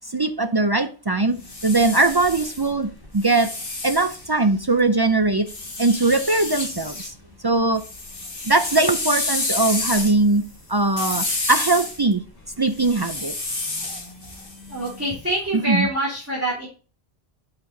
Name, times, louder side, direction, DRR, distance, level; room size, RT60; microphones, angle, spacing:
voice 1, 0.1-3.5 3.8-5.5 5.8-6.9 7.4-7.8 8.5-10.4 10.7-12.2 12.6-13.3 15.7-15.9, right 2 dB, 40° right, 0.3 m, -20 dB
sound 1, 1.3-4.8 5.5-7.1 7.5-15.4, left 2 dB, 55° left, 2.0 m, -30 dB
voice 2, 14.7-16.7, right 1 dB, 15° right, 3.0 m, -25 dB
8.8 x 5.8 x 3.8 m
omnidirectional pair, 1.1 m